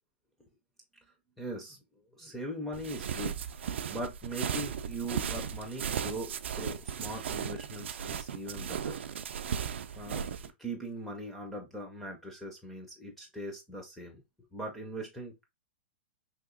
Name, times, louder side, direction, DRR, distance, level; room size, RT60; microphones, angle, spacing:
voice 1, 1.4-1.8 2.1-3.4 3.9-9.0 10.0-14.2 14.5-15.5, right 1 dB, 5° left, 0.4 m, -40 dB
sound 1, 2.7-10.5, right 8 dB, 80° right, 0.4 m, -36 dB
2.8 x 2.7 x 3.6 m
hypercardioid pair, 170°, 6 cm